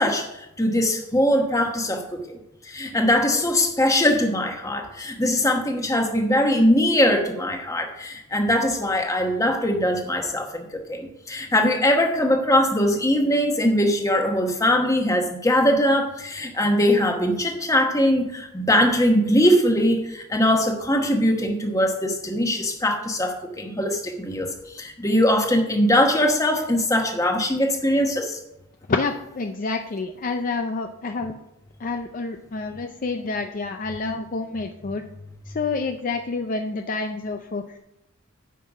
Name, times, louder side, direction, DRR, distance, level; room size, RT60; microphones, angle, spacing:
voice 1, 0.0-2.4 2.6-24.5 24.7-28.4, left 1 dB, 15° left, 3 dB, 1.1 m, -21 dB
voice 2, 28.9-31.3 31.8-35.0 35.5-37.8, left 3 dB, 40° left, 5 dB, 0.4 m, -28 dB
9.3 x 5.7 x 4.8 m, 0.88 s
head